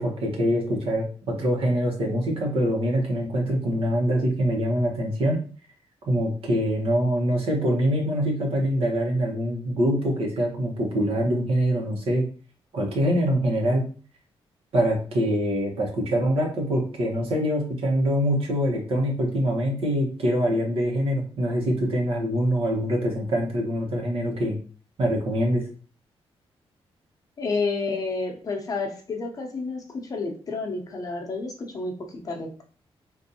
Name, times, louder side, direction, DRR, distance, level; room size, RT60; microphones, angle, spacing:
voice 1, 0.0-5.4 6.1-12.2 12.7-13.8 14.7-24.6 25.0-25.6, equal, 70° right, 0 dB, 1.1 m, -24 dB
voice 2, 27.4-32.6, left 3 dB, 35° left, 1 dB, 0.8 m, -30 dB
3.7 x 2.6 x 2.8 m, 0.40 s
wide cardioid pair, 145°, 10 cm